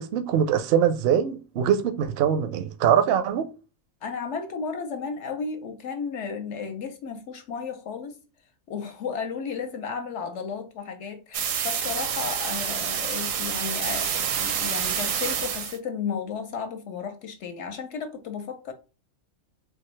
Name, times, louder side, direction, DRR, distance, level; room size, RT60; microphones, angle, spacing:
voice 1, 0.0-3.5, right 9 dB, 65° right, 0.6 m, -23 dB
voice 2, 4.0-8.2 8.7-18.7, left 6 dB, 65° left, 0.9 m, -33 dB
sound 1, 11.3-15.8, right 8 dB, 80° right, 1.0 m, -28 dB
3.9 x 2.6 x 3.1 m
omnidirectional pair, 1.4 m